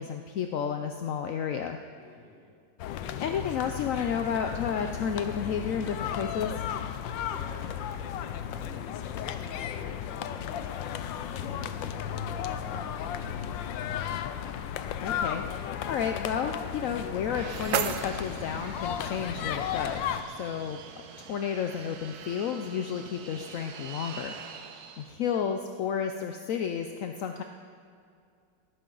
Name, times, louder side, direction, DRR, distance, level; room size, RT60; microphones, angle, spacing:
voice 1, 0.0-1.8 3.2-6.5 15.0-20.0 20.4-24.4 25.0-27.4, left 7 dB, 70° left, 6 dB, 0.8 m, -32 dB
voice 2, 2.0-2.5 7.2-14.3, equal, ahead, -7 dB, 3.6 m, -51 dB
sound 1, 2.8-20.2, left 9 dB, 90° left, 1.4 m, -34 dB
sound 2, 17.0-19.0, right 9 dB, 90° right, 1.4 m, -34 dB
Fixed-wing aircraft airplane, 17.3-25.1, right 6 dB, 65° right, 1.3 m, -45 dB
19.0 x 12.0 x 3.9 m, 2.3 s
omnidirectional pair, 2.0 m